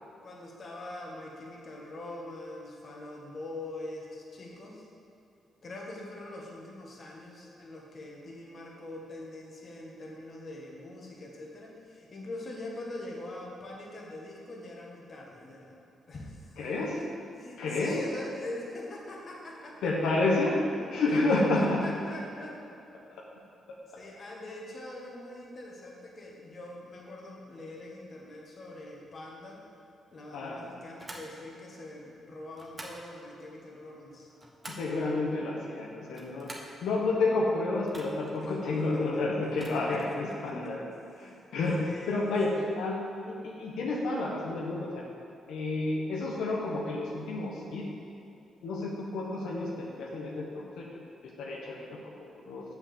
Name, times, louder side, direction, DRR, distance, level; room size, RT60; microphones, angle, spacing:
voice 1, 0.2-4.8 5.6-16.5 17.0-17.1 17.4-20.1 20.8-22.6 23.9-29.6 30.1-34.3 38.4-40.1 40.4-40.7 41.1-41.4 41.8-42.6, left 2 dB, 45° left, -2 dB, 1.8 m, -43 dB
voice 2, 16.6-17.0 17.6-18.0 19.8-20.6 20.9-21.8 23.1-23.2 30.3-30.6 34.7-36.5 36.8-40.9 41.2-41.8 42.1-43.0 43.2-45.0 45.5-47.8 48.6-51.8 52.2-52.6, left 2 dB, 85° left, -2 dB, 1.1 m, -30 dB
sound 1, 31.0-31.3 32.5-33.0 34.1-34.9 36.0-36.8 37.8-38.4 39.5-40.1, right 1 dB, 20° right, 1.2 m, -46 dB
7.4 x 5.8 x 7.0 m, 2.7 s
cardioid pair, 105°, 0 cm